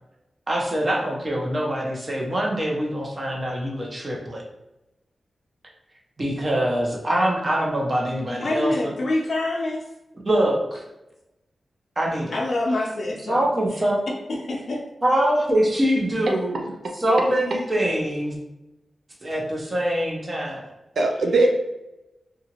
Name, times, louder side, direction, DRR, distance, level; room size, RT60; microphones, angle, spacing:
voice 1, 0.5-4.4 6.2-8.9 10.2-10.8 12.0-12.4 13.3-14.0 15.0-16.6 17.0-18.4 19.2-20.7, right 1 dB, 35° right, -2 dB, 0.8 m, -24 dB
voice 2, 8.4-9.8 12.3-13.5 14.3-14.8, left 2 dB, 60° left, -2 dB, 0.5 m, -26 dB
voice 3, 16.3-16.9 21.0-21.5, right 2 dB, 75° right, 2 dB, 0.4 m, -22 dB
2.9 x 2.4 x 2.9 m, 0.96 s
wide cardioid pair, 80°, 0 cm